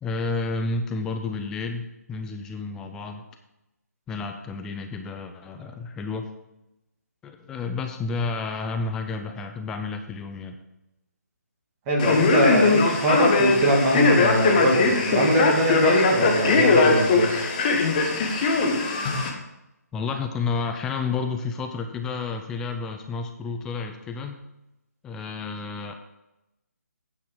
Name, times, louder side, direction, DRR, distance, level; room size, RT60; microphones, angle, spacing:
voice 1, 0.0-3.2 4.1-6.3 7.2-10.6 19.9-24.4 25.0-25.9, left 4 dB, 5° left, 5 dB, 0.3 m, -30 dB
voice 2, 11.9-17.4, right 1 dB, 20° right, -3 dB, 1.8 m, -22 dB
Male speech man speaking, 12.0-19.3, left 3 dB, 30° left, 1.2 m, -21 dB
9.2 x 5.7 x 5.2 m, 0.92 s
figure-of-eight pair, 145°, 9 cm